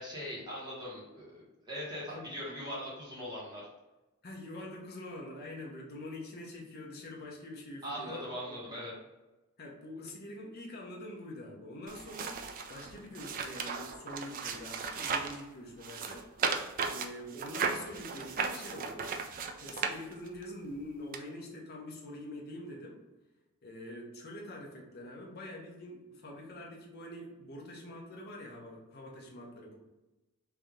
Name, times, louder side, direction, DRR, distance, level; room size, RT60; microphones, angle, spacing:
voice 1, 0.0-3.6 7.8-8.9, equal, 20° right, -7 dB, 1.3 m, -40 dB
voice 2, 4.2-8.8 9.6-16.3 16.9-19.1 19.6-23.0 23.6-29.8, left 1 dB, 45° left, -1 dB, 0.9 m, -45 dB
sound 1, 11.9-15.4 15.8-20.4 21.1-21.2, right 5 dB, 40° right, 0.3 m, -36 dB
3.4 x 2.8 x 3.5 m, 1.0 s
head